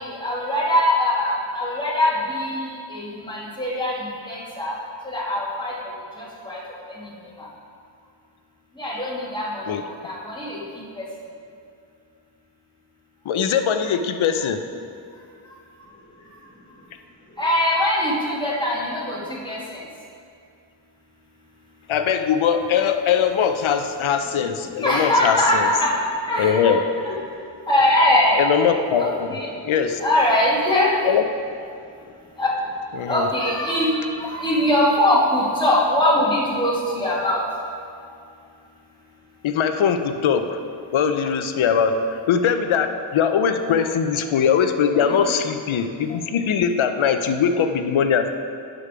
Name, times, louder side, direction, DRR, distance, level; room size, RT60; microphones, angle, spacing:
voice 1, 0.0-3.9 4.2-4.7 5.0-5.7 6.2-6.6 6.9-7.1 7.4-7.5 8.8-11.0 17.4-19.8 24.7-25.9 26.2-26.8 27.1-27.2 27.7-28.4 28.9-29.5 30.0-30.9 32.4-32.5 33.1-37.4, left 1 dB, 10° left, -6 dB, 2.1 m, -22 dB
voice 2, 13.3-14.6 21.9-25.7 26.4-26.8 28.4-29.3 29.6-30.0 31.0-31.2 32.9-33.3 39.4-40.6 40.9-48.3, left 7 dB, 90° left, 8 dB, 0.6 m, -21 dB
11.0 x 5.2 x 5.0 m, 2.4 s
wide cardioid pair, 75°, 46 cm